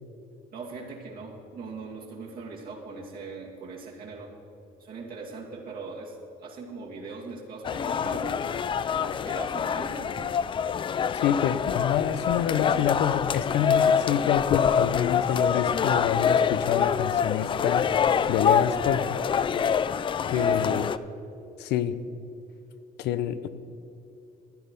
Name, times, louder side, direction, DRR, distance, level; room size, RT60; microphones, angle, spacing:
voice 1, 0.5-4.3 4.8-8.6 8.9-10.4 20.3-21.1, right 4 dB, 60° right, -3 dB, 2.3 m, -40 dB
sound 1, 7.6-21.0, left 7 dB, 30° left, 0.3 m, -25 dB
voice 2, 11.1-17.8 18.3-19.2 20.3-20.9 21.6-22.0 23.0-23.5, left 9 dB, 80° left, 13 dB, 0.7 m, -27 dB
14.0 x 9.7 x 5.3 m, 2.9 s
cardioid pair, 110°, 17 cm